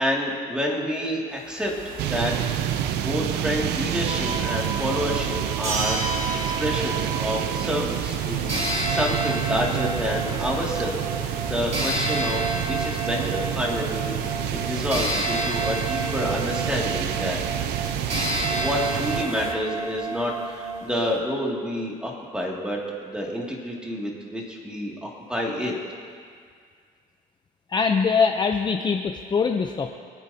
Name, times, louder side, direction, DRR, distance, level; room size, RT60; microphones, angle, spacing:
voice 1, 0.0-2.3 2.6-17.4 18.5-25.8, equal, 5° right, -3 dB, 2.4 m, -29 dB
sound 1, 1.3-19.5, right 4 dB, 60° right, 1.2 m, -36 dB
sound 2, 2.0-19.3, right 11 dB, 80° right, 0.5 m, -29 dB
sound 3, 4.1-7.8 8.5-21.2, right 2 dB, 40° right, 2.9 m, -30 dB
voice 2, 27.7-29.9, left 5 dB, 25° left, 4 dB, 0.6 m, -23 dB
24.0 x 9.2 x 2.8 m, 2.1 s
cardioid pair, 110°, 17 cm